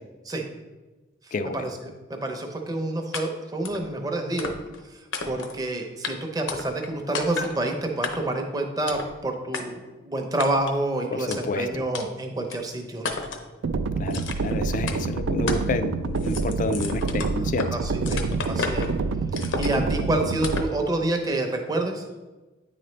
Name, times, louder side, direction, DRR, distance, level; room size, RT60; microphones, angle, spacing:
voice 1, 1.3-1.7 11.1-11.8 14.0-17.7, left 3 dB, 40° left, 10 dB, 0.3 m, -29 dB
voice 2, 2.1-4.5 5.2-13.2 17.7-18.8 19.4-22.0, right 2 dB, 20° right, 3 dB, 0.6 m, -28 dB
sound 1, 3.1-3.2 3.6-3.8 4.4-4.8 5.1-5.6 6.0-6.1 6.5-6.9 7.1-7.5 8.0-8.4 8.9-9.1 9.5-9.6 10.4-10.8 11.3-11.4 11.9-12.1 12.5-12.6 13.0-13.5 14.1-14.5 14.9-15.0 15.5-15.7 16.0-17.7 18.0-18.9 19.3-20.0 20.4-20.7, left 4 dB, 80° left, 0.7 m, -32 dB
sound 2, 13.6-20.6, right 4 dB, 70° right, 0.3 m, -27 dB
9.4 x 3.9 x 3.2 m, 1.2 s
head